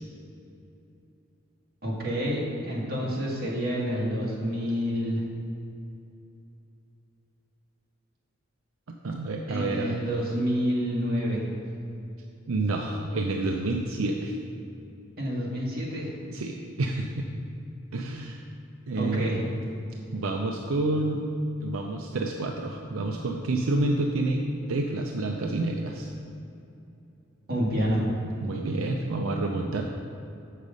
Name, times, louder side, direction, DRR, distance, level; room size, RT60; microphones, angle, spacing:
voice 1, 1.8-5.2 9.5-11.5 15.2-16.1 19.0-19.4 27.5-28.1, equal, 45° right, -5 dB, 2.0 m, -28 dB
voice 2, 8.9-10.0 12.5-14.4 16.0-17.3 17.9-18.4 18.9-19.3 20.1-21.3 21.6-26.1 28.4-29.8, right 2 dB, 80° right, 2 dB, 0.6 m, -29 dB
7.4 x 6.6 x 5.2 m, 2.8 s
head